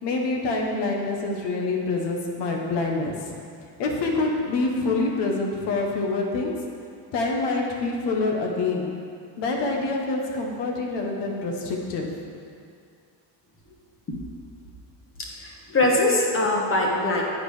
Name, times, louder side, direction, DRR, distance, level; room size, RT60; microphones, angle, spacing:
voice 1, 0.0-3.3 3.8-6.5 7.1-8.9 9.4-12.1, left 3 dB, 75° left, 0 dB, 1.2 m, -26 dB
voice 2, 15.4-17.2, left 2 dB, 30° left, -2 dB, 1.2 m, -22 dB
8.3 x 5.1 x 4.9 m, 2.4 s
cardioid pair, 130°, 42 cm